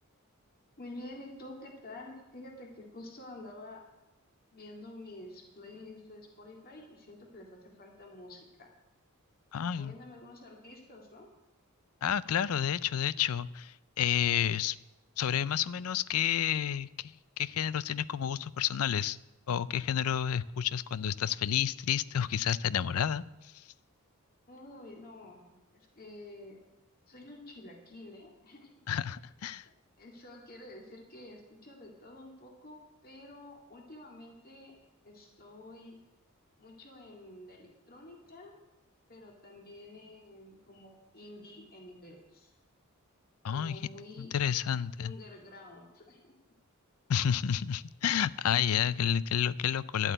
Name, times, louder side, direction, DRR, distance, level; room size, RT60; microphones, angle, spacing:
voice 1, 0.8-3.8 4.5-8.7 9.8-11.3 24.5-26.6 27.1-28.8 30.0-32.8 33.0-34.7 35.0-36.0 36.6-38.5 39.1-42.5 43.5-44.3 45.0-46.3, left 2 dB, 45° left, 0 dB, 2.3 m, -49 dB
voice 2, 9.5-9.9 12.0-14.8 15.2-19.2 19.5-23.6 28.9-29.6 43.4-43.8 44.2-45.1 47.1-50.1, left 9 dB, 75° left, 18 dB, 0.4 m, -30 dB
11.5 x 8.1 x 9.0 m, 1.0 s
head